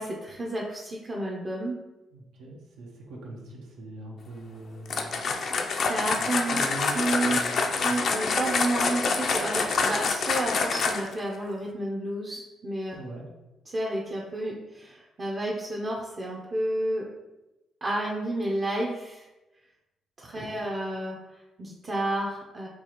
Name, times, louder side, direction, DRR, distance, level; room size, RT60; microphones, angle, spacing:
voice 1, 0.0-1.8 5.4-6.5 6.9-7.4 7.7-13.0 13.7-17.1 17.8-19.3 20.2-22.7, right 1 dB, 40° right, -3 dB, 0.6 m, -31 dB
voice 2, 2.1-5.2 6.1-6.9 7.2-7.9 12.9-13.3 20.4-20.5, right 2 dB, 90° right, -3 dB, 0.8 m, -41 dB
sound 1, 4.9-11.2, left 4 dB, 60° left, 0.4 m, -26 dB
4.6 x 2.4 x 2.9 m, 1.0 s
cardioid pair, 90°, 0 cm